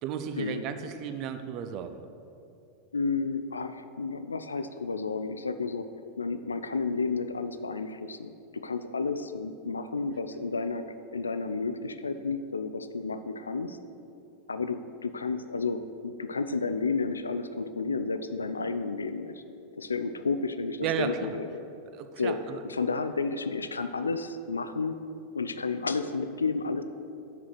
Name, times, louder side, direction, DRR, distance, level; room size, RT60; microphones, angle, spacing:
voice 1, 0.0-2.0 20.8-21.3 21.9-22.6, right 8 dB, 40° right, 8 dB, 0.4 m, -34 dB
voice 2, 2.9-5.9 6.2-10.8 11.1-13.8 14.5-19.4 19.8-21.6 22.2-22.4 22.6-25.0 25.3-26.8, left 4 dB, 75° left, 10 dB, 0.3 m, -31 dB
5.7 x 4.7 x 5.9 m, 2.6 s
figure-of-eight pair, 90°, 0 cm